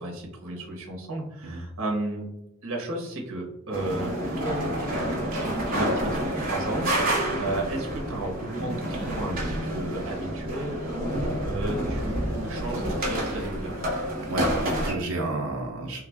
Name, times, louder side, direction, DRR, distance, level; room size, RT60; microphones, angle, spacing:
voice 1, 0.0-2.3 2.6-13.9, right 1 dB, 65° right, 0 dB, 1.0 m, -34 dB
sound 1, 3.7-14.9, right 1 dB, 45° right, 1.0 m, -29 dB
voice 2, 14.3-16.0, right 2 dB, 80° right, -1 dB, 0.6 m, -31 dB
3.4 x 2.4 x 3.4 m, 0.86 s
head